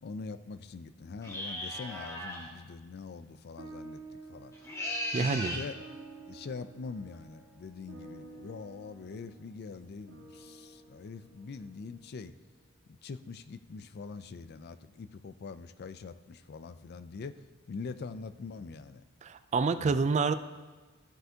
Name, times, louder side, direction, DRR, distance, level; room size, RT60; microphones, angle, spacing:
voice 1, 0.0-4.0 4.3-4.5 5.2-5.8 6.3-12.3 12.9-17.4 17.7-19.0 19.8-20.0, left 4 dB, 50° left, 12 dB, 0.4 m, -43 dB
sound 1, 1.2-2.5 4.5-5.7, left 1 dB, 15° left, 1.4 m, -37 dB
sound 2, 3.6-12.2, right 3 dB, 90° right, 1.6 m, -51 dB
voice 2, 5.1-5.6 19.2-20.3, right 4 dB, 35° right, 12 dB, 0.3 m, -27 dB
14.0 x 7.7 x 2.8 m, 1.3 s
head